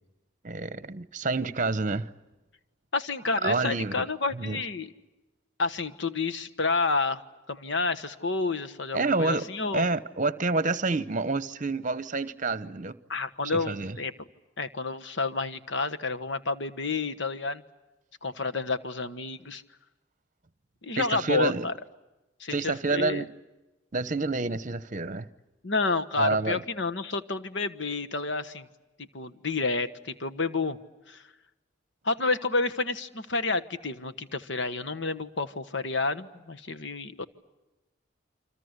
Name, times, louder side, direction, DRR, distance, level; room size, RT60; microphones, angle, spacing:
voice 1, 0.4-2.1 3.4-4.0 4.3-4.6 8.9-9.5 9.7-13.0 13.4-14.0 21.0-21.7 22.5-23.3 23.9-25.3 26.2-26.6, right 3 dB, 40° right, 0.9 m, -28 dB
voice 2, 2.9-4.9 5.6-7.2 7.5-9.9 13.1-14.3 14.6-17.6 18.2-19.6 20.8-21.7 22.4-23.2 25.6-28.7 29.0-30.8 31.1-31.2 32.0-37.2, left 3 dB, 60° left, 1.3 m, -30 dB
28.5 x 26.0 x 8.1 m
head